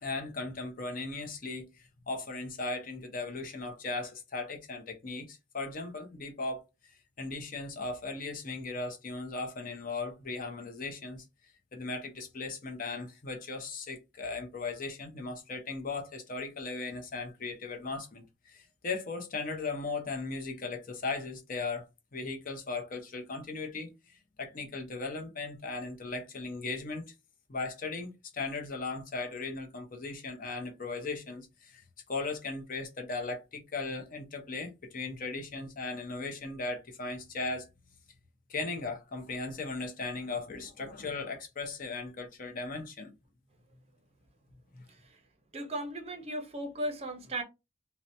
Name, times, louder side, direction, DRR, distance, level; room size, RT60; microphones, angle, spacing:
voice 1, 0.0-1.7 2.1-6.6 7.2-11.2 11.7-21.9 22.1-27.1 27.5-37.7 38.5-43.1 44.7-44.8, left 3 dB, 45° left, 0.6 m, -37 dB
voice 2, 45.5-47.4, right 1 dB, 30° right, 0.6 m, -36 dB
2.8 x 2.1 x 2.6 m
head